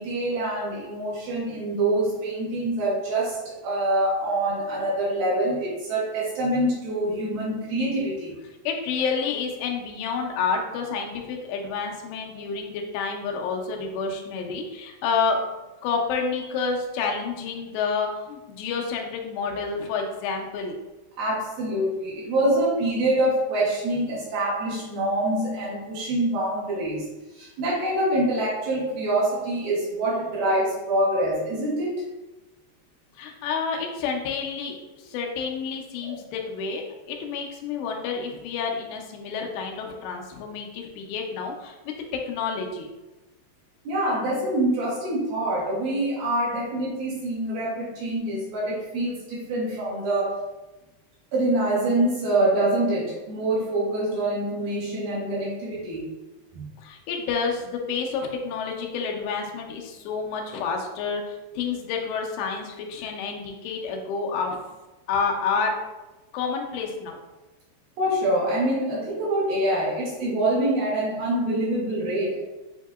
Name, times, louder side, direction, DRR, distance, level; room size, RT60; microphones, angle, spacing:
voice 1, 0.0-8.3 21.2-27.1 27.3-32.0 36.0-36.2 43.8-50.3 51.3-56.1 56.5-56.7 68.0-72.4, right 1 dB, 70° right, -6 dB, 2.6 m, -25 dB
voice 2, 8.7-15.4 15.8-20.8 33.2-42.9 56.8-61.2 61.6-64.6 65.1-65.7 66.3-67.2, left 5 dB, 90° left, 2 dB, 2.9 m, -29 dB
8.1 x 2.7 x 2.4 m, 1.1 s
omnidirectional pair, 4.8 m